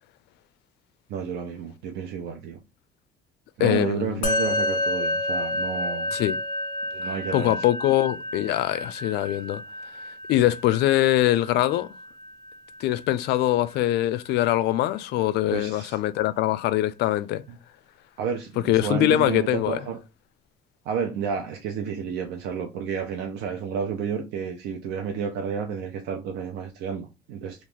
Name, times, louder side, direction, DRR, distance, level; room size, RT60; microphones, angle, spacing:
voice 1, 1.1-2.6 3.6-6.1 6.9-7.7 10.3-10.4 15.5-16.0 17.5-17.6 18.2-20.0 20.9-27.6, right 7 dB, 90° right, 0.6 m, -31 dB
voice 2, 3.6-4.2 6.1-6.4 7.0-9.6 10.3-11.9 12.8-17.4 18.7-19.8, left 14 dB, 75° left, 0.4 m, -23 dB
Musical instrument, 4.2-13.8, left 1 dB, 50° left, 0.9 m, -30 dB
3.0 x 2.4 x 3.6 m
cardioid pair, 110°, 17 cm